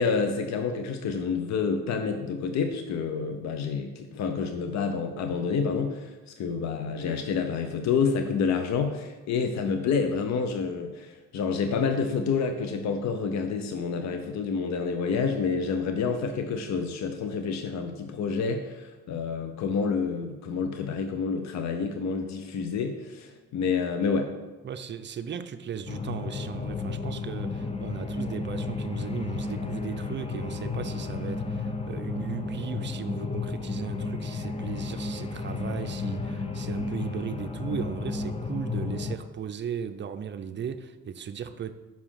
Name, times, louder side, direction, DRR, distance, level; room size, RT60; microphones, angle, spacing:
voice 1, 0.0-24.3, left 5 dB, 65° left, 6 dB, 0.7 m, -28 dB
voice 2, 24.6-41.7, right 7 dB, 40° right, 10 dB, 0.5 m, -36 dB
sound 1, 25.9-39.2, left 4 dB, 20° left, 0.6 m, -33 dB
5.5 x 4.9 x 5.7 m, 1.2 s
cardioid pair, 90°, 30 cm